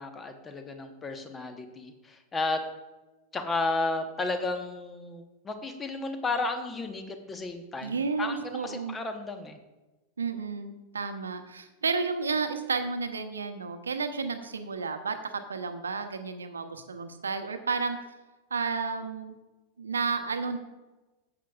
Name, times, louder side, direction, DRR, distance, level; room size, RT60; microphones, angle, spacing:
voice 1, 0.0-2.6 3.3-9.6, left 3 dB, 15° left, 7 dB, 1.1 m, -33 dB
voice 2, 7.8-9.0 10.2-18.0 18.5-19.4 19.8-20.6, right 4 dB, 70° right, 7 dB, 0.9 m, -32 dB
14.0 x 8.4 x 2.4 m, 1.1 s
figure-of-eight pair, 90°, 0 cm